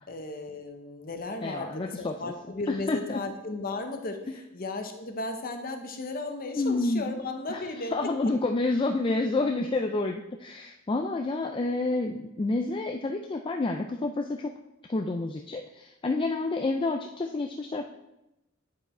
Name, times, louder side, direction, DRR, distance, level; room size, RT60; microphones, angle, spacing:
voice 1, 0.1-8.1, left 2 dB, 45° left, 5 dB, 0.9 m, -35 dB
voice 2, 1.4-2.1 2.9-3.0 6.6-7.1 7.5-7.6 7.9-14.5 14.9-17.9, left 2 dB, 25° left, 2 dB, 0.4 m, -29 dB
9.1 x 4.8 x 4.3 m, 0.90 s
head